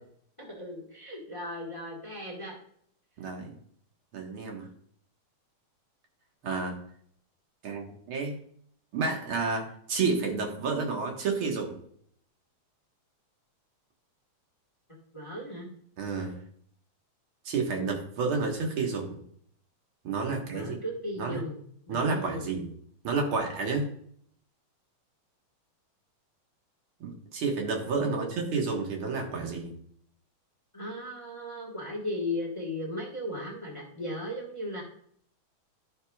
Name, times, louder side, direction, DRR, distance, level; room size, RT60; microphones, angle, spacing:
voice 1, 0.4-2.5 15.1-15.7 20.5-21.6 21.9-22.5 28.0-28.4 30.7-34.8, left 1 dB, 35° left, -1 dB, 0.4 m, -36 dB
voice 2, 3.2-3.5 4.1-4.7 6.4-6.8 7.6-8.4 8.9-11.8 16.0-16.3 17.5-19.2 20.0-20.7 21.2-21.4 21.9-22.7 23.0-23.9 27.0-29.7, right 4 dB, 50° right, 1 dB, 1.8 m, -30 dB
12.0 x 6.6 x 2.3 m, 0.63 s
omnidirectional pair, 3.6 m